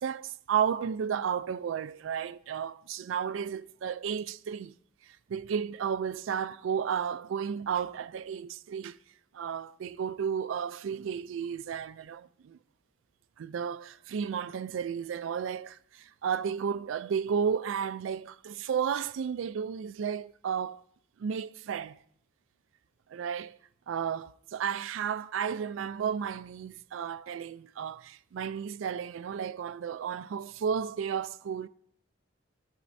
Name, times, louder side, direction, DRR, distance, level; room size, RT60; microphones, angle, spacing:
voice 1, 0.0-4.7 5.0-9.0 9.3-12.6 13.4-20.8 21.2-22.0 23.1-23.6 23.9-31.7, right 7 dB, 85° right, 0.3 m, -33 dB
17.0 x 13.5 x 2.6 m
head